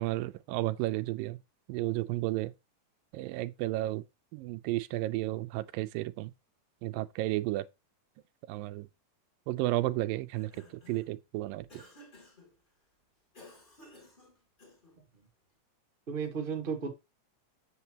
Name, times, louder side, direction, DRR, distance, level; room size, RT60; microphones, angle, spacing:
voice 1, 0.0-1.4 1.7-2.5 3.1-4.0 4.3-6.3 6.8-7.6 8.5-8.9 9.5-10.5 10.9-11.7, right 17 dB, 90° right, 2.3 m, -32 dB
Cough, 10.2-11.2 11.7-12.5 13.3-15.0, left 1 dB, 15° left, 2.4 m, -55 dB
voice 2, 15.0-15.3 16.1-16.9, right 6 dB, 30° right, 0.9 m, -35 dB
8.2 x 7.2 x 2.9 m
omnidirectional pair, 3.9 m